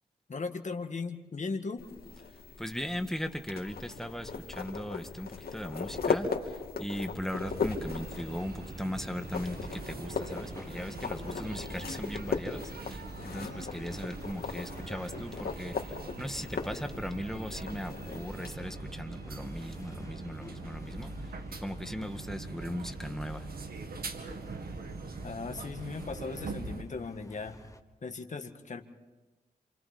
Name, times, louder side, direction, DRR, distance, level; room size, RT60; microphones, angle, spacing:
voice 1, 0.3-1.9 25.2-27.6 28.0-28.8, left 4 dB, 50° left, 5 dB, 1.8 m, -37 dB
sound 1, 1.8-18.5, left 5 dB, 75° left, 2.6 m, -38 dB
voice 2, 2.6-21.3 21.6-23.5, equal, 5° left, 6 dB, 1.8 m, -38 dB
sound 2, 7.3-26.8, right 3 dB, 70° right, 2.0 m, -43 dB
sound 3, 8.0-27.8, left 2 dB, 20° left, 1.6 m, -51 dB
28.0 x 27.0 x 4.4 m, 1.2 s
cardioid pair, 60°, 16 cm